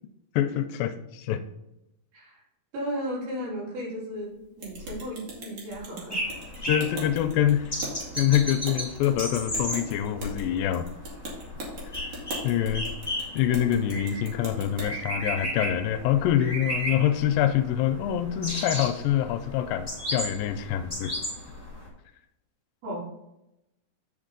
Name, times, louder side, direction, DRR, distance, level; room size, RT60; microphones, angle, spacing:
voice 1, 0.4-1.4 6.7-7.8 8.2-10.9 12.0-12.1 12.4-12.9 13.4-21.1, left 11 dB, 80° left, 9 dB, 2.2 m, -25 dB
voice 2, 2.7-6.2 22.8-23.1, equal, 75° right, -5 dB, 4.7 m, -35 dB
sound 1, 4.6-14.9, equal, 55° right, 3.3 m, -39 dB
sound 2, 6.1-21.9, equal, 10° left, 1.6 m, -35 dB
9.1 x 5.4 x 3.9 m, 0.87 s
omnidirectional pair, 4.2 m